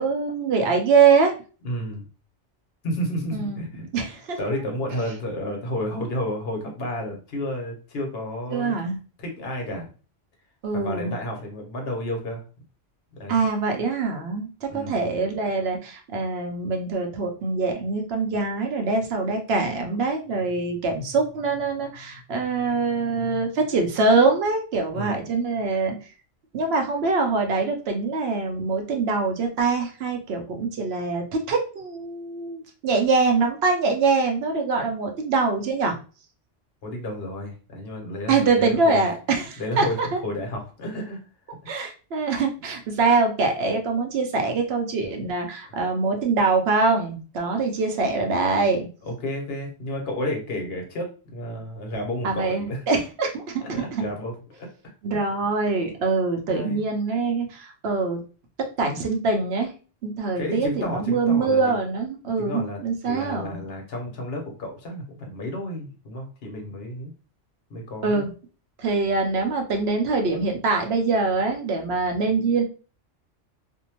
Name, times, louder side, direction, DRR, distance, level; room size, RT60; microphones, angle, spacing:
voice 1, 0.0-1.3 3.3-3.6 3.9-4.5 8.5-9.0 10.6-11.1 13.3-25.9 26.5-35.9 38.3-40.2 41.7-48.9 52.2-54.0 55.0-58.2 58.8-59.7 60.0-63.6 68.0-68.3 68.8-72.6, right 4 dB, 65° right, 3 dB, 0.8 m, -24 dB
voice 2, 1.6-2.1 2.8-3.9 4.4-8.7 9.2-9.9 10.7-12.4 13.1-13.4 14.7-15.0 24.9-25.3 36.8-40.0 40.2-41.2 45.7-45.8 49.0-52.8 53.6-54.7 56.5-56.8 60.4-61.7 62.4-62.8 63.0-67.1 67.7-68.2, left 1 dB, 60° left, 2 dB, 1.0 m, -31 dB
2.6 x 2.1 x 2.9 m, 0.36 s
omnidirectional pair, 1.2 m